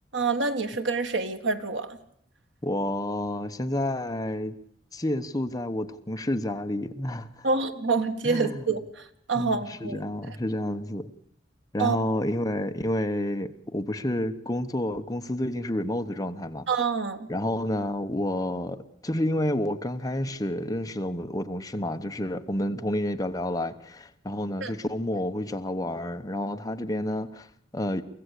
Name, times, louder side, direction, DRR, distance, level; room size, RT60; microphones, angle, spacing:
voice 1, 0.1-2.0 7.4-10.0 11.8-12.0 16.7-17.3 24.6-24.7, right 4 dB, 80° right, 1.7 m, -27 dB
voice 2, 2.6-4.5 4.9-7.5 8.2-8.6 9.3-11.1 11.7-16.7 17.3-27.5 27.7-28.0, left 1 dB, 20° left, 1.1 m, -29 dB
24.0 x 15.5 x 8.3 m
head